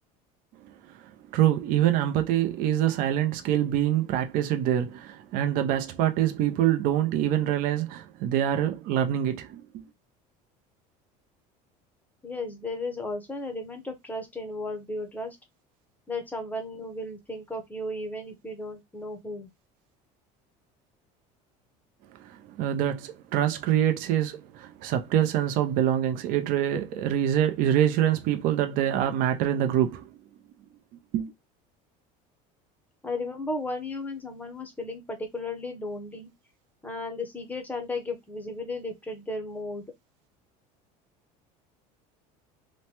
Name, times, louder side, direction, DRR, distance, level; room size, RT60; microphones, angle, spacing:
voice 1, 1.3-9.8 22.2-30.0 31.1-31.3, right 11 dB, 60° right, 0.6 m, -25 dB
voice 2, 12.2-15.4 16.1-19.5 33.0-36.3 36.8-39.9, left 2 dB, 10° left, 0.7 m, -35 dB
3.0 x 2.2 x 2.8 m
cardioid pair, 140°, 17 cm